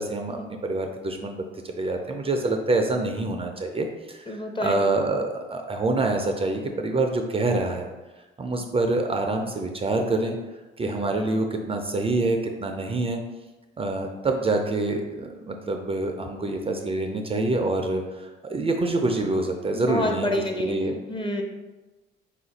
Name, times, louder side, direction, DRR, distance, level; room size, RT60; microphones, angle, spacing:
voice 1, 0.0-7.9 8.4-10.4 10.8-13.2 13.8-20.3 20.6-21.0, right 2 dB, 30° right, 3 dB, 0.4 m, -26 dB
voice 2, 4.3-4.9 19.7-21.4, left 1 dB, 25° left, 3 dB, 0.6 m, -28 dB
4.2 x 2.5 x 4.0 m, 1.2 s
cardioid pair, 90°, 20 cm